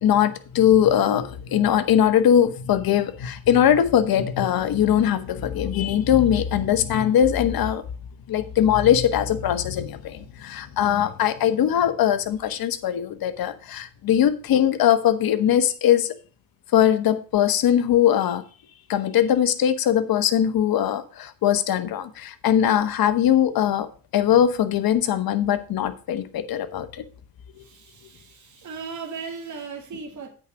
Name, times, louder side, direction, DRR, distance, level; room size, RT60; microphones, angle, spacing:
voice 1, 0.0-7.8 8.3-16.1 16.7-18.4 18.9-23.9 24.1-27.0, left 10 dB, 55° left, 1.1 m, -21 dB
voice 2, 27.6-30.3, right 5 dB, 40° right, 2.0 m, -37 dB
8.5 x 5.0 x 6.2 m
hypercardioid pair, 55°, 43 cm